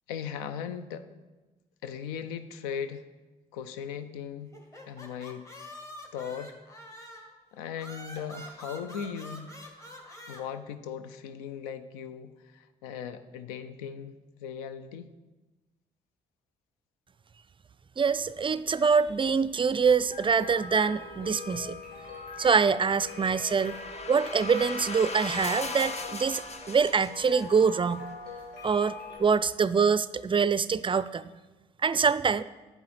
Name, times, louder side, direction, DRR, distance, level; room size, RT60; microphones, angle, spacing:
voice 1, 0.1-1.1 1.8-3.0 3.5-4.5 4.9-5.4 6.1-6.5 7.5-9.5 10.3-15.1, left 8 dB, 90° left, 11 dB, 0.4 m, -38 dB
sound 1, 4.5-7.4 7.8-10.4, equal, 15° left, 1.8 m, -46 dB
voice 2, 18.0-21.7 22.4-23.7 24.1-28.1 28.6-31.3 31.8-32.4, right 5 dB, 30° right, 16 dB, 0.4 m, -25 dB
Symphonion Wiener Blut, 18.1-29.2, left 4 dB, 60° left, 2.3 m, -43 dB
sound 2, 22.3-27.6, left 3 dB, 35° left, 0.8 m, -39 dB
9.6 x 6.9 x 4.2 m, 1.2 s
hypercardioid pair, 40°, 18 cm